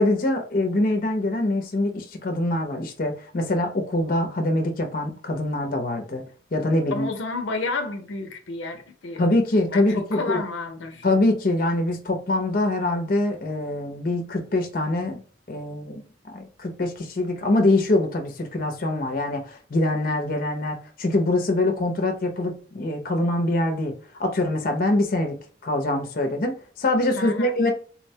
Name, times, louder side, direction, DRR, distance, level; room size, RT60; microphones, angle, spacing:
voice 1, 0.0-6.2 6.5-7.1 9.2-10.4 11.0-15.2 15.5-23.9 24.2-25.4 25.6-27.7, left 2 dB, 50° left, 0.6 m, -24 dB
voice 2, 6.9-9.2 9.7-11.1 27.2-27.5, left 3 dB, 90° left, 0.6 m, -31 dB
3.9 x 2.1 x 2.7 m
head